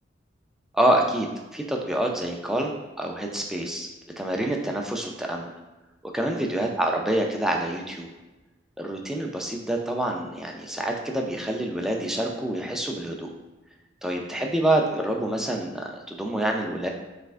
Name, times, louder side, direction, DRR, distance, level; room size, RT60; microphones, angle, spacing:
voice 1, 0.7-3.9 4.2-5.5 6.1-8.1 8.8-13.3 14.0-16.9, right 1 dB, 5° right, 1 dB, 0.3 m, -27 dB
3.4 x 3.2 x 2.4 m, 1.1 s
head